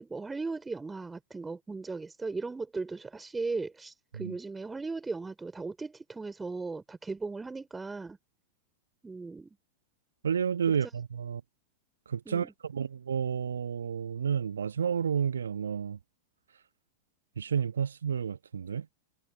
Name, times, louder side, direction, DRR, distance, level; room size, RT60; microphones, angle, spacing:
voice 1, 0.0-8.2 9.0-9.6 10.8-10.9 12.3-12.5, right 3 dB, 10° right, 3.9 m, -37 dB
voice 2, 10.2-11.4 12.1-16.0 17.4-18.9, right 7 dB, 70° right, 1.2 m, -31 dB
figure-of-eight pair, 90°, 0 cm